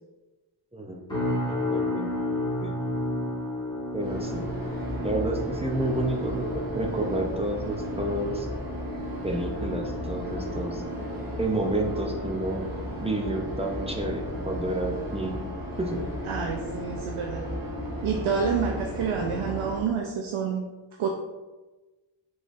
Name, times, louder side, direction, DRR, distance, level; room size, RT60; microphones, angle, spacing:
voice 1, 0.7-1.0 1.5-2.1 2.6-2.8 3.9-4.5 5.0-8.5 9.2-10.8 11.4-12.6 13.0-15.4 15.8-16.0, right 1 dB, 15° right, 1 dB, 0.5 m, -30 dB
sound 1, 1.1-16.3 16.6-17.0 17.5-17.7, left 1 dB, 10° left, 1.5 m, -34 dB
sound 2, 4.0-19.8, equal, 45° right, 1.1 m, -35 dB
voice 2, 16.2-17.4 18.0-20.7 21.0-21.1, right 6 dB, 85° right, 1 dB, 0.6 m, -28 dB
5.0 x 3.9 x 2.5 m, 1.2 s
wide cardioid pair, 135°, 49 cm